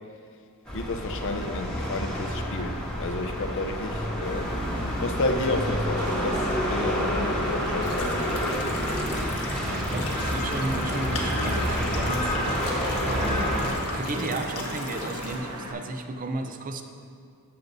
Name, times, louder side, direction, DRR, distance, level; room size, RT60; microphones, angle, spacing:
voice 1, 0.7-4.5 5.0-8.8, left 2 dB, 60° left, 5 dB, 0.6 m, -31 dB
sound 1, 0.7-13.7, equal, 5° left, 1.3 m, -29 dB
Wind / Rain, 4.2-15.7, right 1 dB, 85° right, 1.0 m, -36 dB
sound 2, 7.8-15.4, left 3 dB, 90° left, 1.3 m, -38 dB
voice 2, 9.6-12.4 13.0-16.8, right 2 dB, 40° right, 6 dB, 0.5 m, -34 dB
14.0 x 6.7 x 2.6 m, 2.3 s
head